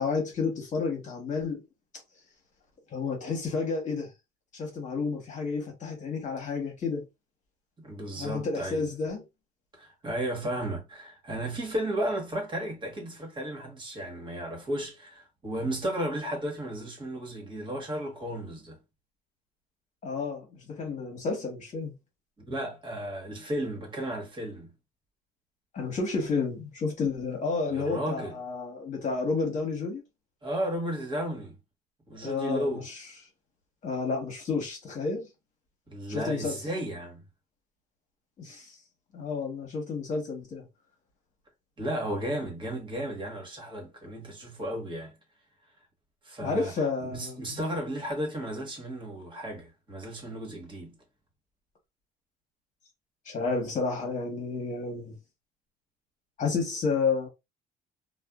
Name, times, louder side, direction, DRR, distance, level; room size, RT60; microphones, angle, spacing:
voice 1, 0.0-1.6 2.9-4.1 4.5-7.1 8.1-9.2 20.0-21.9 25.7-30.0 32.2-33.0 33.8-35.3 36.1-36.6 38.4-38.7 39.1-40.7 46.4-47.6 53.2-55.1 56.4-57.3, left 4 dB, 45° left, 1.2 m, -31 dB
voice 2, 7.8-8.8 9.7-18.8 22.5-24.7 27.7-28.3 30.4-31.6 32.1-32.9 35.9-37.2 41.8-45.1 46.2-50.9, right 1 dB, 30° right, 1.3 m, -34 dB
2.5 x 2.3 x 2.3 m
cardioid pair, 110°, 17 cm